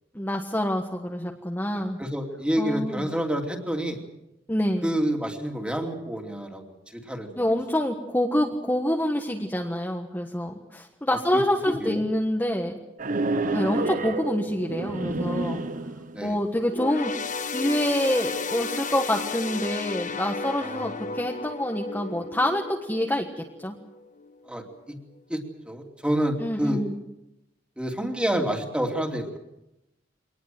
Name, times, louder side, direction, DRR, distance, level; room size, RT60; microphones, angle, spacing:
voice 1, 0.1-2.0 2.6-3.1 4.5-4.9 7.4-12.7 13.5-15.6 16.2-17.1 17.4-23.7 26.4-27.0, left 1 dB, 10° left, 1 dB, 1.4 m, -26 dB
voice 2, 2.0-4.0 4.8-6.6 6.9-7.3 11.1-11.2 11.7-12.0 13.4-13.6 16.1-16.4 20.6-21.2 24.5-25.0 25.3-25.4 25.7-26.8 27.8-29.4, equal, 5° right, 3 dB, 2.8 m, -28 dB
sound 1, 13.0-16.3, right 2 dB, 45° right, 1.1 m, -29 dB
sound 2, 16.7-24.4 24.8-25.0 25.9-26.0, left 4 dB, 45° left, 1.3 m, -33 dB
23.5 x 19.5 x 7.8 m, 0.91 s
head